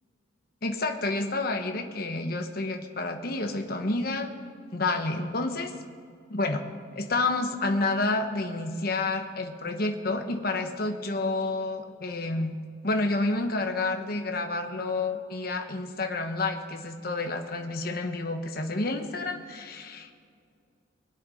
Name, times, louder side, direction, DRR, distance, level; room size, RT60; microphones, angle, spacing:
voice 1, 0.6-4.3 4.7-5.7 6.3-6.6 7.0-12.6 12.8-20.1, left 2 dB, 50° left, 5 dB, 1.1 m, -29 dB
22.0 x 8.0 x 5.0 m, 2.2 s
head